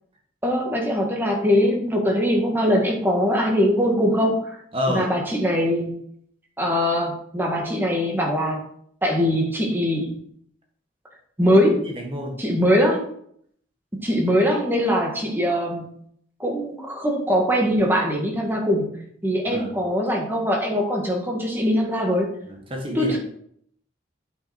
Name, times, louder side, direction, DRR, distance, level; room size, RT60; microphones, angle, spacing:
voice 1, 0.4-4.6 4.9-6.0 6.6-8.6 9.0-10.1 11.4-11.8 12.4-13.0 14.0-15.9 16.4-22.3 22.9-23.2, equal, 10° right, 0 dB, 1.8 m, -22 dB
voice 2, 4.7-5.1 11.8-12.4 19.5-19.7 22.4-23.2, left 1 dB, 30° right, 1 dB, 1.6 m, -28 dB
8.9 x 5.9 x 4.4 m, 0.66 s
head